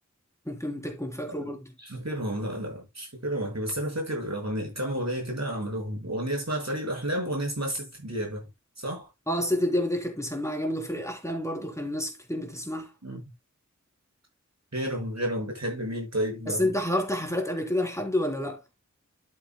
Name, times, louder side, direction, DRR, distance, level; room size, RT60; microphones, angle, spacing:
voice 1, 0.4-1.7 9.3-12.9 16.5-18.6, left 1 dB, 10° left, 3.6 m, -29 dB
voice 2, 1.8-8.5 8.8-9.1 13.0-13.2 14.7-16.7, right 1 dB, 60° right, 6.6 m, -31 dB
12.5 x 7.8 x 2.3 m
wide cardioid pair, 45°, 30 cm